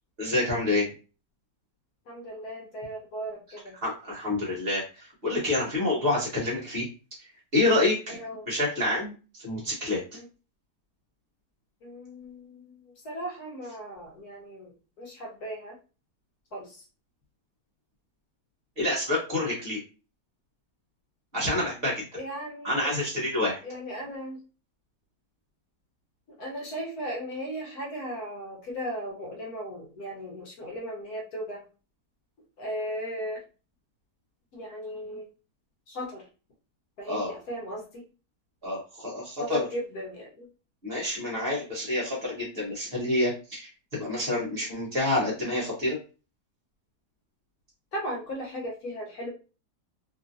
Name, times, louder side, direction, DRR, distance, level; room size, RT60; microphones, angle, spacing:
voice 1, 0.2-0.9 3.8-6.9 7.2-8.2 8.5-10.0 18.8-19.8 21.3-22.0 22.6-23.6 37.1-37.3 38.6-39.7 40.8-46.0, left 2 dB, 40° right, -4 dB, 1.1 m, -28 dB
voice 2, 2.1-3.8 8.1-8.5 10.1-10.2 11.8-14.7 15.0-15.8 16.5-16.8 22.1-22.9 23.6-24.4 26.4-31.6 32.6-33.4 34.5-35.3 35.9-36.2 37.0-38.0 39.4-40.5 47.9-49.3, equal, 65° left, -2 dB, 1.2 m, -36 dB
3.0 x 2.6 x 2.5 m, 0.34 s
omnidirectional pair, 1.8 m